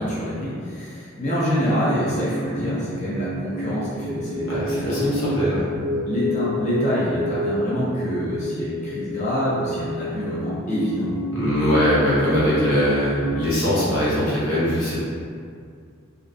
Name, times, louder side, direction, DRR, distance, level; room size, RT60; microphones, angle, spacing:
voice 1, 0.0-5.0 6.1-11.1, equal, 35° left, -9 dB, 0.5 m, -26 dB
sound 1, 1.4-13.5, equal, 10° right, 0.6 m, -30 dB
voice 2, 4.5-5.6 11.3-15.0, equal, 90° left, -9 dB, 0.9 m, -21 dB
2.5 x 2.3 x 2.4 m, 2.2 s
head